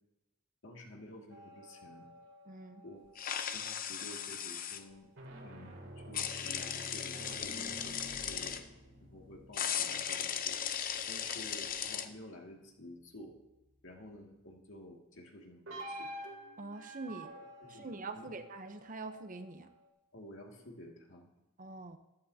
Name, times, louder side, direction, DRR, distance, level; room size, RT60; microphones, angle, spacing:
voice 1, 0.6-2.1 2.8-3.0 3.5-5.1 5.4-8.6 9.0-10.6 11.1-13.4 13.8-16.1 17.6-18.3 20.1-21.3, left 1 dB, 80° left, 0 dB, 2.2 m, -51 dB
sound 1, 1.3-3.9 5.0-11.8 15.7-19.9, right 1 dB, 85° right, 2.6 m, -50 dB
voice 2, 2.5-2.8 16.6-17.3 17.7-19.7 21.6-22.0, right 3 dB, 45° right, 8 dB, 0.8 m, -44 dB
Whipped cream canister malfunction, 3.2-4.8 6.1-8.6 9.5-12.1, left 8 dB, 45° left, 0.7 m, -37 dB
14.5 x 12.5 x 2.8 m, 0.98 s
head